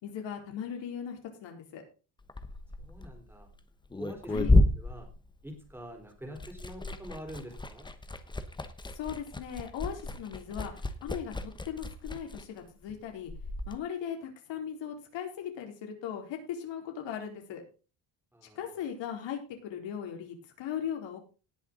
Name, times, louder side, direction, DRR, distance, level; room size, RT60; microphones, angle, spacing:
voice 1, 0.0-1.8 4.3-4.5 8.9-13.3 13.7-17.6 18.6-21.2, left 8 dB, 85° left, 3 dB, 4.3 m, -38 dB
Liquid, 2.2-5.9 6.2-13.8, left 2 dB, 10° left, 1.0 m, -31 dB
voice 2, 2.8-3.5 4.0-5.1 5.4-7.9 18.3-18.8, equal, 5° right, 2 dB, 4.0 m, -45 dB
18.5 x 6.9 x 3.9 m, 0.34 s
cardioid pair, 160°, 43 cm